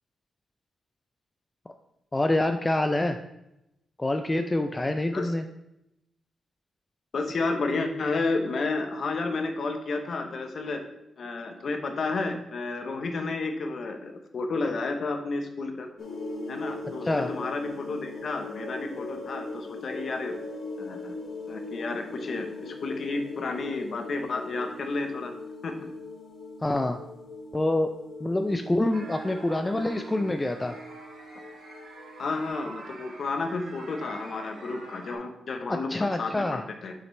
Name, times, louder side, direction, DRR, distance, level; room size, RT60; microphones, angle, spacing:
voice 1, 2.1-3.2 4.0-5.5 17.1-17.3 26.6-27.0 27.5-27.9 28.2-30.8 35.9-36.6, left 1 dB, 15° left, 6 dB, 0.3 m, -26 dB
voice 2, 7.1-10.8 11.2-15.9 16.5-20.3 20.8-21.2 21.5-25.3 25.6-25.8 32.2-36.9, left 3 dB, 50° left, 6 dB, 0.8 m, -31 dB
sound 1, 16.0-32.5, left 2 dB, 70° left, 1.3 m, -40 dB
sound 2, 28.9-35.2, right 2 dB, 70° right, 2.4 m, -46 dB
7.4 x 5.8 x 3.2 m, 0.87 s
wide cardioid pair, 150°, 0 cm